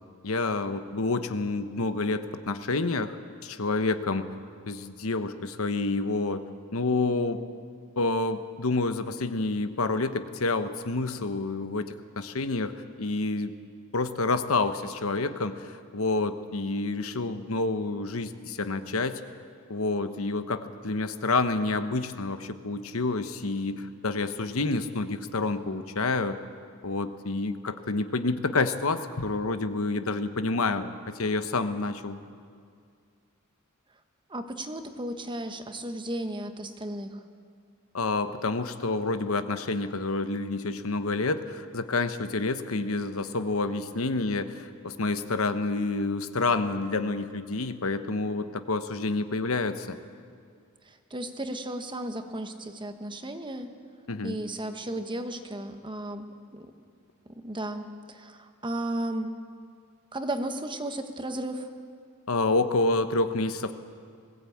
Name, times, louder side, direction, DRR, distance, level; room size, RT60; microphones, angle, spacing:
voice 1, 0.2-3.2 3.4-4.3 4.7-6.4 6.7-7.4 8.0-13.5 13.9-19.2 19.7-26.4 26.8-30.9 31.2-32.2 37.9-50.0 54.1-54.4 62.3-63.7, left 3 dB, 85° left, 10 dB, 1.1 m, -28 dB
voice 2, 7.0-7.4 34.3-37.2 50.9-53.7 54.2-56.2 56.5-56.7 57.4-59.3 60.1-61.7, right 1 dB, 25° right, 7 dB, 1.3 m, -34 dB
20.5 x 16.5 x 8.6 m, 2.2 s
head